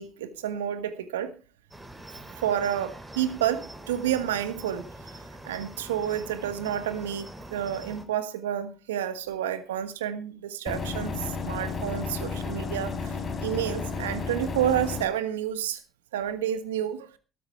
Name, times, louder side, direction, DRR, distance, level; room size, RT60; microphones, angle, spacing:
voice 1, 0.0-1.3 2.4-4.9 5.4-13.1 13.4-15.8 16.1-17.1, right 10 dB, 85° right, 1.4 m, -30 dB
Cricket, 1.7-8.0, right 1 dB, 10° right, 5.0 m, -44 dB
sound 1, 10.7-15.1, left 4 dB, 45° left, 3.5 m, -32 dB
13.5 x 12.5 x 4.5 m
hypercardioid pair, 55°, 0 cm